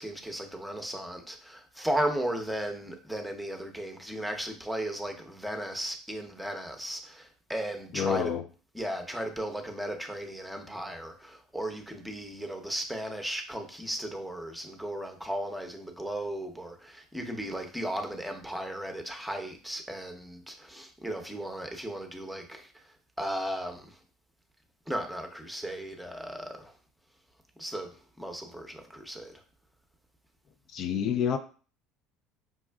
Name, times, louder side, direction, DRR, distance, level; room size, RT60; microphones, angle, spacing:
voice 1, 0.0-8.4 8.7-22.7 23.2-23.9 24.9-26.7 27.6-27.9 28.2-29.3, right 1 dB, ahead, 4 dB, 0.8 m, -35 dB
voice 2, 7.9-8.4 30.7-31.4, left 8 dB, 55° left, 8 dB, 0.3 m, -28 dB
5.0 x 2.3 x 2.3 m, 0.39 s
hypercardioid pair, 80°, 0 cm